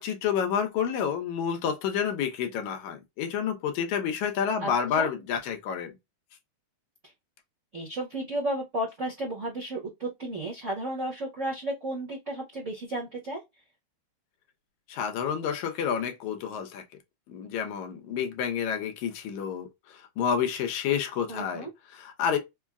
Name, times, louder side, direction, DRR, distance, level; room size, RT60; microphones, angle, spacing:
voice 1, 0.0-6.0 14.9-16.8 17.3-22.4, left 7 dB, 75° left, 2.1 m, -29 dB
voice 2, 7.7-13.4 21.3-21.7, right 1 dB, 70° right, 0.7 m, -33 dB
5.4 x 2.1 x 2.3 m
omnidirectional pair, 3.5 m